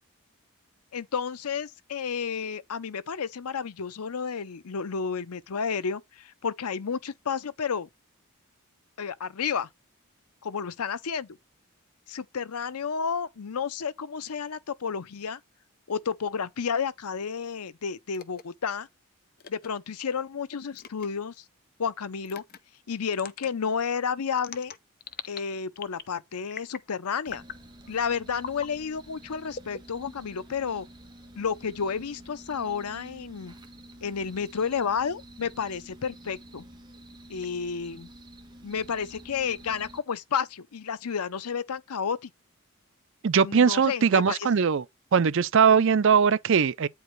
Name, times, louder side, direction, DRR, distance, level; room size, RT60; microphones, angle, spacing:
voice 1, 0.9-7.9 9.0-9.7 10.4-11.4 12.1-15.4 15.9-18.9 19.5-21.4 21.8-22.4 22.9-24.7 25.3-27.4 27.9-30.9 31.4-33.5 34.0-36.6 37.3-38.1 38.6-42.3 43.4-44.5, left 6 dB, 85° left, 0.6 m, -31 dB
sound 1, 18.1-18.4 19.4-19.7 20.8-21.1 22.3-22.6 23.1-23.5 24.4-25.4 25.8-26.1 26.5-26.9 27.3-27.6 28.4-28.7 29.5-30.4, left 7 dB, 40° left, 0.6 m, -41 dB
sound 2, 27.3-40.0, right 1 dB, 20° right, 1.2 m, -49 dB
voice 2, 43.2-44.8 45.1-46.9, right 6 dB, 60° right, 0.5 m, -20 dB
8.9 x 4.7 x 3.2 m
head